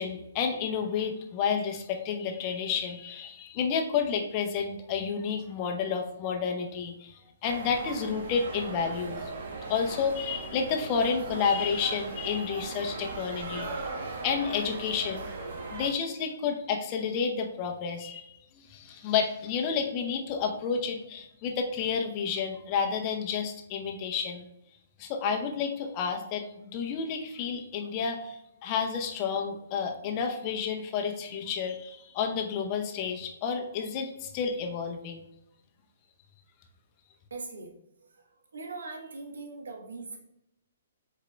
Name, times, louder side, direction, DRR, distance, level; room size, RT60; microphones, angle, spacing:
voice 1, 0.0-9.3 9.7-13.8 14.2-15.3 15.7-24.4 25.0-35.2, left 6 dB, 35° left, 3 dB, 0.7 m, -30 dB
sound 1, 7.4-15.9, right 3 dB, 55° right, 1.0 m, -38 dB
voice 2, 37.3-37.7 38.1-40.2, right 3 dB, 80° right, 1 dB, 1.1 m, -41 dB
4.8 x 4.4 x 2.2 m, 0.84 s
hypercardioid pair, 140°, 0 cm